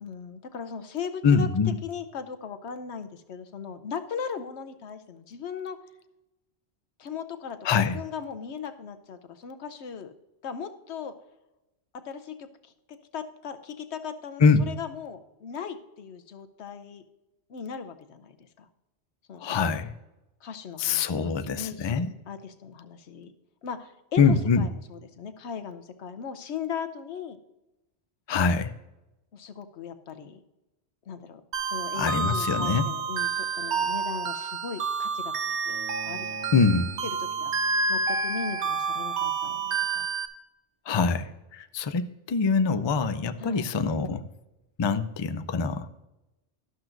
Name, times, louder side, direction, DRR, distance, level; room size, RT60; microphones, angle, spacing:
voice 1, 0.0-1.5 1.8-5.8 7.0-10.1 10.4-11.2 11.9-12.7 13.1-17.0 17.5-18.7 19.3-19.8 20.4-23.3 23.6-27.4 29.3-30.4 31.1-31.4 31.7-36.5 37.0-37.5 37.9-40.1 43.4-43.7, left 7 dB, 75° left, 9 dB, 1.0 m, -38 dB
voice 2, 1.2-1.8 7.6-8.0 14.4-14.6 19.4-19.9 20.8-22.1 24.2-24.7 28.3-28.7 32.0-32.9 36.5-36.9 40.9-44.2 44.8-45.9, left 5 dB, 45° left, 11 dB, 0.3 m, -24 dB
sound 1, 31.5-40.3, right 4 dB, 75° right, 1.2 m, -29 dB
Bowed string instrument, 35.7-38.7, right 6 dB, 20° right, 2.2 m, -46 dB
12.5 x 12.0 x 2.6 m, 0.97 s
omnidirectional pair, 1.2 m